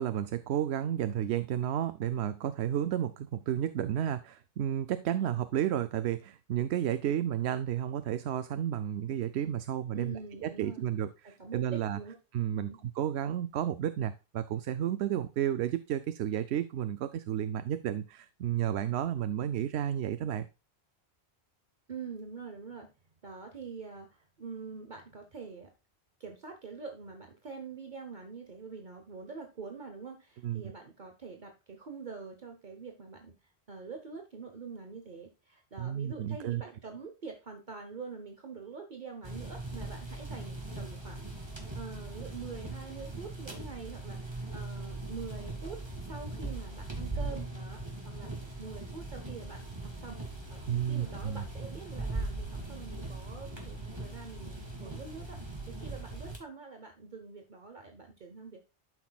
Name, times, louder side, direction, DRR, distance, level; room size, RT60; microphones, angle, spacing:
voice 1, 0.0-12.0 12.3-20.5 30.4-30.6 35.8-36.6 50.7-51.4, right 10 dB, 80° right, 12 dB, 0.8 m, -32 dB
voice 2, 9.9-10.8 11.2-12.2 12.5-12.8 21.9-22.9 23.2-25.7 26.2-48.3 48.6-50.2 50.5-58.6, right 4 dB, 45° right, 4 dB, 1.1 m, -45 dB
sound 1, 39.2-56.4, right 2 dB, 25° right, 2.3 m, -40 dB
12.0 x 6.0 x 2.3 m, 0.31 s
omnidirectional pair, 1.1 m